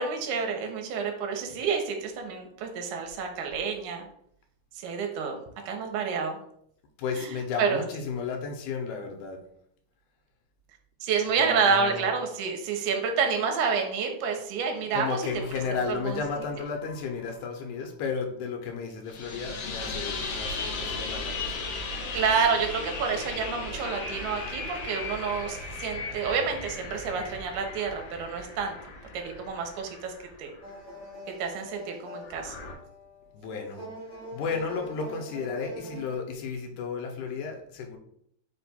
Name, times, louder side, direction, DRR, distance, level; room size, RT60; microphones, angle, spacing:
voice 1, 0.0-4.1 4.8-5.4 5.7-6.4 7.2-7.3 7.6-7.8 11.0-15.3 15.9-16.2 22.1-28.8 29.1-30.5 31.4-32.6, right 5 dB, 90° right, 4 dB, 2.1 m, -29 dB
voice 2, 7.0-9.4 11.4-12.2 14.9-21.7 33.3-33.8 34.3-38.0, left 5 dB, 85° left, 3 dB, 2.1 m, -33 dB
sound 1, 15.3-17.5 19.1-30.7 32.2-32.7, left 3 dB, 70° left, 1.5 m, -37 dB
sound 2, 30.6-36.2, equal, 5° left, 0.4 m, -43 dB
4.9 x 2.2 x 4.1 m, 0.69 s
omnidirectional pair, 3.6 m